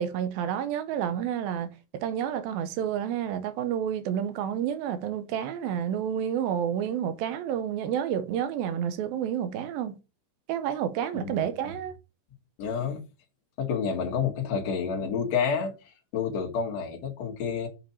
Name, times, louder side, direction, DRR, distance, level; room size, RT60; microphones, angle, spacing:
voice 1, 0.0-10.0 10.5-11.9, right 9 dB, 90° right, 2.6 m, -30 dB
voice 2, 12.6-13.0 13.6-15.7 16.1-17.7, left 6 dB, 55° left, 2.5 m, -29 dB
7.1 x 5.1 x 4.2 m
omnidirectional pair, 4.1 m